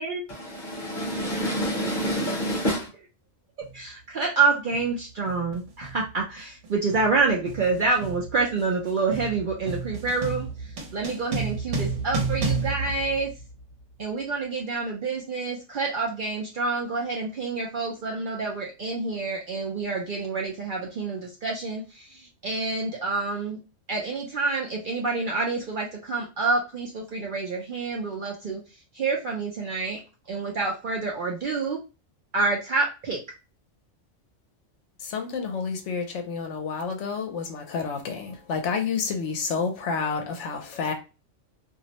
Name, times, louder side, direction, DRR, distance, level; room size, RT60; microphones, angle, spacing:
voice 1, 0.4-2.9, equal, 45° left, 0.8 m, -27 dB
sound 1, 3.6-3.8 4.7-5.0 5.3-13.8, right 4 dB, 80° right, 1.0 m, -32 dB
voice 2, 3.7-10.5 10.9-13.3 14.0-23.6 23.9-28.6 28.9-30.0 30.3-31.8 32.3-33.2, right 4 dB, 55° right, 0.6 m, -27 dB
voice 3, 35.0-40.9, left 5 dB, 75° left, 0.9 m, -29 dB
2.5 x 2.0 x 2.8 m
omnidirectional pair, 1.3 m